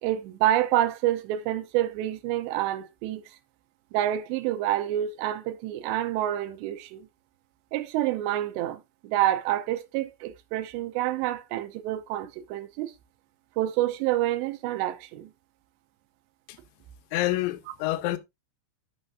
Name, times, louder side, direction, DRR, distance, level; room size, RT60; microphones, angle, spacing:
voice 1, 0.0-3.2 3.9-7.1 7.7-12.9 13.6-15.3, right 13 dB, 80° right, 2.8 m, -28 dB
voice 2, 17.1-18.2, left 16 dB, 80° left, 3.1 m, -27 dB
12.0 x 6.3 x 2.6 m
omnidirectional pair, 5.3 m